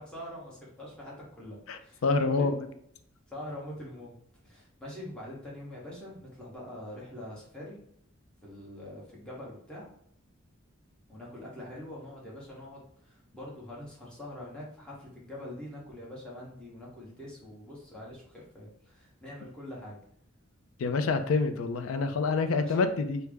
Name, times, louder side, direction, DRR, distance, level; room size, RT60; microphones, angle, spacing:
voice 1, 0.0-2.0 2.4-2.5 3.3-4.2 4.4-7.8 8.4-9.9 11.1-20.0 22.5-22.8, left 1 dB, 5° left, -6 dB, 1.0 m, -44 dB
voice 2, 1.7-2.7 20.8-23.2, left 4 dB, 75° left, 8 dB, 0.4 m, -27 dB
3.3 x 2.0 x 3.4 m, 0.66 s
head